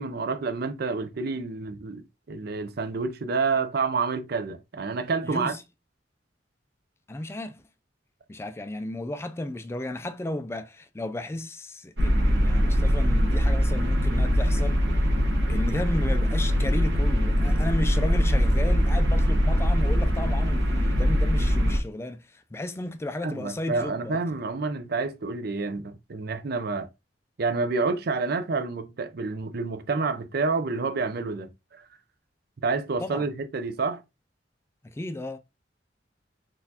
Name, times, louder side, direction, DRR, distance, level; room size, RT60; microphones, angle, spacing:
voice 1, 0.0-5.6 23.2-26.9 27.4-31.8 32.6-34.0, right 4 dB, 60° right, 0.5 m, -29 dB
voice 2, 5.2-5.6 7.1-7.6 8.3-14.8 15.5-24.2 33.0-33.3 34.8-35.4, left 1 dB, 15° left, 0.3 m, -34 dB
sound 1, 12.0-21.8, equal, 75° right, 1.0 m, -22 dB
3.9 x 2.5 x 2.7 m
head